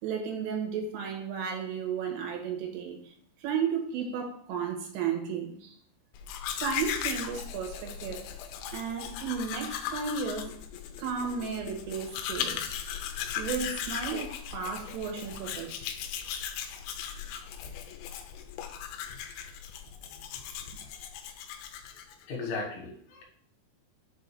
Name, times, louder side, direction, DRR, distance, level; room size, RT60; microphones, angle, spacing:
voice 1, 0.0-3.1 3.4-5.8 6.6-8.3 8.7-10.5 11.0-12.8 13.4-15.9, right 6 dB, 85° right, 2 dB, 3.7 m, -34 dB
Domestic sounds home sounds, 6.2-22.2, left 9 dB, 90° left, 3.2 m, -38 dB
voice 2, 22.3-23.2, left 3 dB, 70° left, -2 dB, 3.5 m, -36 dB
7.7 x 2.6 x 5.7 m, 0.63 s
omnidirectional pair, 5.8 m